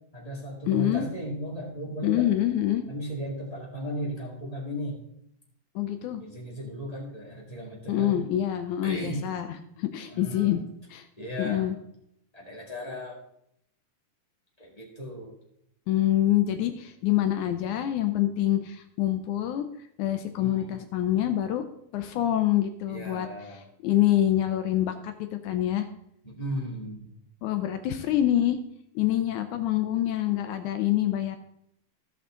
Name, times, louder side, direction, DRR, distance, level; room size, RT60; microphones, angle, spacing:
voice 1, 0.1-2.3 2.9-5.0 6.2-8.2 8.8-9.3 10.1-10.6 11.2-11.7 12.3-13.2 14.6-15.3 20.4-20.8 22.9-23.6 26.2-27.1, equal, 15° left, -4 dB, 1.6 m, -36 dB
voice 2, 0.7-1.0 2.0-2.8 5.8-6.2 7.9-9.5 9.8-10.6 10.9-11.0 11.4-11.8 15.9-19.7 20.0-21.6 21.9-23.3 23.8-25.9 27.4-28.6 29.0-31.4, left 12 dB, 75° left, 7 dB, 1.9 m, -26 dB
15.5 x 5.9 x 3.7 m, 0.75 s
omnidirectional pair, 3.8 m